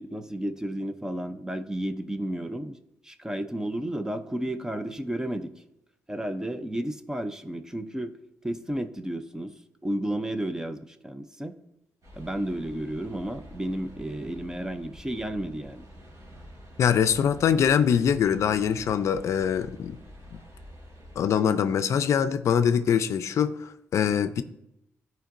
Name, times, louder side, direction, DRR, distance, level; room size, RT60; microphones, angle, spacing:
voice 1, 0.0-2.8 3.0-5.5 6.1-8.1 8.4-9.5 9.8-11.6 12.1-15.9, right 1 dB, 10° right, 10 dB, 0.5 m, -32 dB
sound 1, 12.0-21.2, equal, 70° right, 3.0 m, -48 dB
voice 2, 16.8-20.0 21.2-24.4, left 8 dB, 65° left, 12 dB, 0.4 m, -23 dB
13.5 x 4.5 x 2.6 m, 0.84 s
cardioid pair, 100°, 5 cm